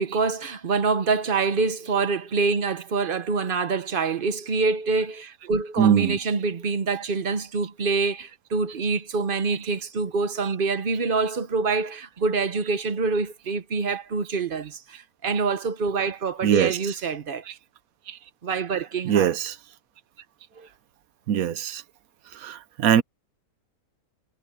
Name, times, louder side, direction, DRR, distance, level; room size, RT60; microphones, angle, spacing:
voice 1, 0.0-17.4 18.4-19.3 20.6-20.7, right 4 dB, 40° right, 1.0 m, -26 dB
voice 2, 5.8-6.2 9.5-9.6 10.4-10.5 16.4-16.8 19.0-19.5 21.3-21.8 22.4-23.0, right 9 dB, 70° right, 1.1 m, -22 dB
omnidirectional pair, 1.6 m